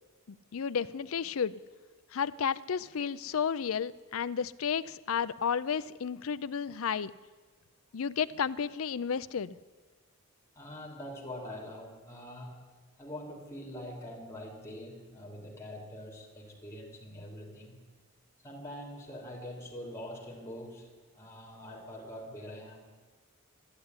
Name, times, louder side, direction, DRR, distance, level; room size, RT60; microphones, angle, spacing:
voice 1, 0.3-1.6 2.1-7.1 7.9-9.5, left 7 dB, 65° left, 15 dB, 0.5 m, -32 dB
voice 2, 10.5-12.6 13.0-17.8 18.4-22.9, left 1 dB, 15° left, -2 dB, 3.2 m, -44 dB
12.0 x 11.5 x 9.6 m, 1.3 s
head